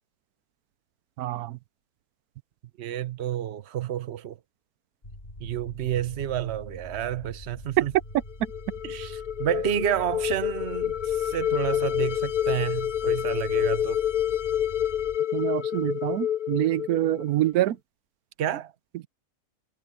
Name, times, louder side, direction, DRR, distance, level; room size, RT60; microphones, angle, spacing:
voice 1, 1.2-1.6 7.8-7.9 15.3-17.8, right 15 dB, 85° right, 1.1 m, -25 dB
voice 2, 2.8-4.4 5.4-7.9 8.8-14.0 18.4-18.7, right 11 dB, 50° right, 1.1 m, -30 dB
sound 1, 5.0-15.2, left 1 dB, 35° left, 6.6 m, -44 dB
sound 2, 8.3-17.5, left 10 dB, 55° left, 0.5 m, -28 dB
omnidirectional pair, 1.5 m